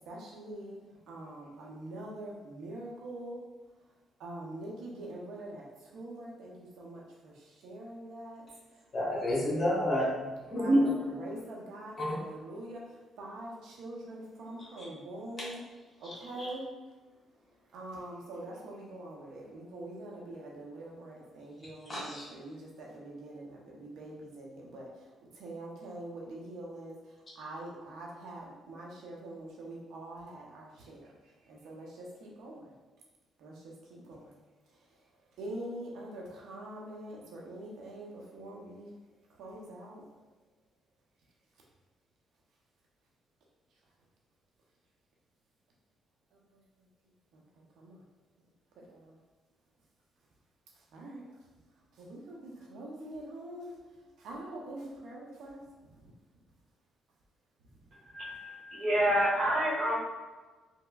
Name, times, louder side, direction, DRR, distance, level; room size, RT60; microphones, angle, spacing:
voice 1, 0.1-3.4 4.2-8.5 10.6-15.6 16.0-16.6 17.7-25.1 25.3-27.0 27.3-32.6 33.4-34.4 35.4-38.9 39.3-40.0 46.3-46.6 47.3-48.0 48.8-49.2 50.9-51.2 51.9-53.8 54.2-56.1, right 1 dB, 80° right, -3 dB, 0.6 m, -44 dB
voice 2, 8.9-10.1 10.5-11.0 12.0-12.1 14.8-14.9 15.4-15.5 16.0-16.1 16.4-16.5 21.9-22.2, equal, 30° left, -6 dB, 1.3 m, -28 dB
voice 3, 58.1-59.9, equal, 50° right, -6 dB, 1.3 m, -28 dB
3.2 x 2.8 x 2.2 m, 1.3 s
cardioid pair, 90°, 0 cm